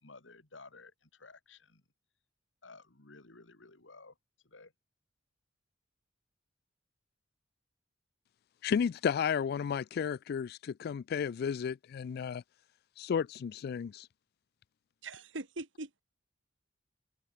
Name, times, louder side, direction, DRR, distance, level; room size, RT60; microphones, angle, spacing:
voice 1, 0.0-1.8 2.6-4.1 4.4-4.7, left 3 dB, 70° left, 2.5 m, -54 dB
voice 2, 8.6-12.4 13.0-14.1, left 7 dB, 55° left, 0.3 m, -33 dB
voice 3, 15.0-16.0, right 2 dB, 70° right, 2.1 m, -42 dB
head